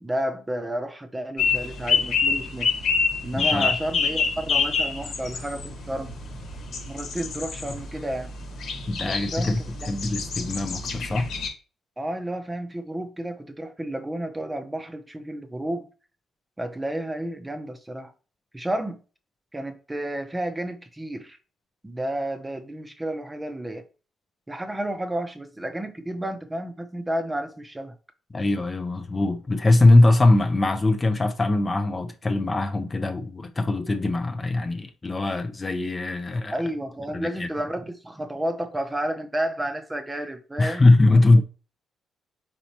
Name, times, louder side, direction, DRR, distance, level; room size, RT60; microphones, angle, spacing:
voice 1, 0.0-2.7 3.2-6.1 6.9-8.3 9.1-10.0 12.0-15.9 16.6-18.1 18.5-19.0 19.5-21.4 21.8-23.8 24.5-27.9 36.5-40.8, right 1 dB, 15° right, 0.7 m, -31 dB
sound 1, 1.4-11.5, left 5 dB, 75° left, 1.3 m, -27 dB
voice 2, 3.4-3.7 8.9-9.6 9.9-11.3 28.3-36.5 37.1-37.5 40.6-41.4, left 2 dB, 25° left, 0.5 m, -21 dB
4.5 x 4.1 x 2.8 m
cardioid pair, 90°, 0 cm